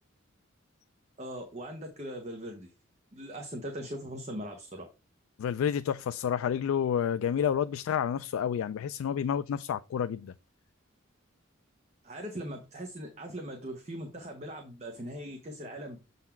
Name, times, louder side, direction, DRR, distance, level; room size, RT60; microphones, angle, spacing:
voice 1, 1.2-2.7 3.1-4.9 12.0-16.0, equal, 30° right, 0.9 m, -40 dB
voice 2, 5.4-10.3, left 8 dB, 85° left, 0.3 m, -29 dB
7.2 x 4.0 x 4.3 m
head